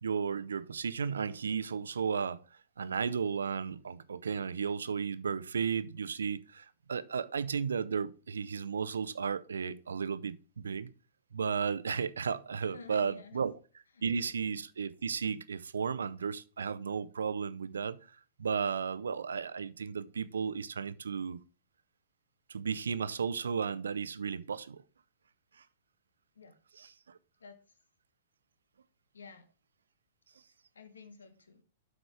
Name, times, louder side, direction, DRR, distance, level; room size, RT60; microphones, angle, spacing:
voice 1, 0.0-2.4 2.8-10.9 11.3-13.5 14.0-18.0 18.4-21.4 22.5-24.8 26.8-26.9, right 6 dB, 75° right, 0.5 m, -34 dB
voice 2, 12.6-13.4 13.9-14.3 26.3-26.5 27.4-27.6 29.1-29.4 30.7-31.6, left 4 dB, 80° left, 1.3 m, -52 dB
7.9 x 5.0 x 4.8 m
figure-of-eight pair, 110°, 0 cm